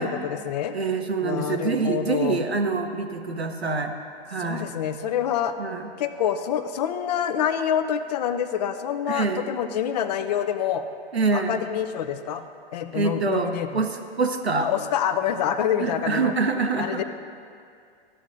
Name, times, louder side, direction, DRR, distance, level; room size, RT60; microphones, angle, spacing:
voice 1, 0.0-0.7 1.2-2.4 4.4-5.5 6.0-10.8 11.3-12.4 12.7-13.8 14.6-16.3 16.8-17.0, left 9 dB, 40° left, 9 dB, 0.5 m, -27 dB
voice 2, 0.7-3.9 4.2-4.7 5.6-5.9 9.1-9.5 11.1-11.6 12.9-14.7 15.8-17.0, right 4 dB, 90° right, 5 dB, 0.8 m, -25 dB
13.0 x 7.1 x 2.6 m, 2.3 s
figure-of-eight pair, 110°, 31 cm